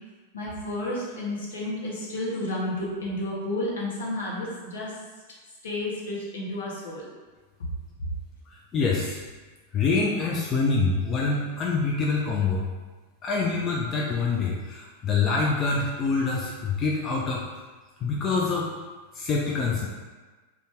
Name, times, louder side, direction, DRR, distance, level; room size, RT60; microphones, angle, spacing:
voice 1, 0.3-4.9 5.6-7.1, left 1 dB, 65° left, -4 dB, 0.8 m, -31 dB
voice 2, 8.5-9.2 9.7-12.6 13.2-17.6 18.0-18.7 19.1-19.9, left 4 dB, 25° left, -3 dB, 0.3 m, -25 dB
2.6 x 2.3 x 3.4 m, 1.3 s
figure-of-eight pair, 90°, 0 cm